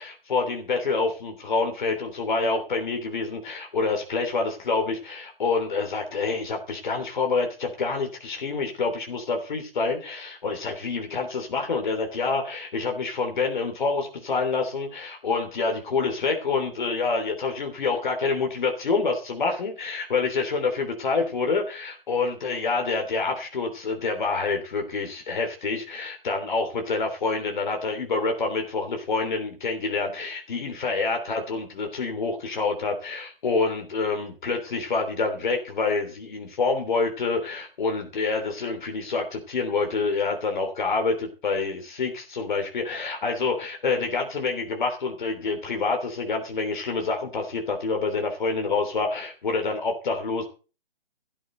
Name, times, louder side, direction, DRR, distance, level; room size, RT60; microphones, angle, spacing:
voice 1, 0.0-50.5, left 4 dB, 55° left, 3 dB, 3.3 m, -27 dB
13.5 x 12.5 x 4.0 m, 0.35 s
figure-of-eight pair, 130°, 29 cm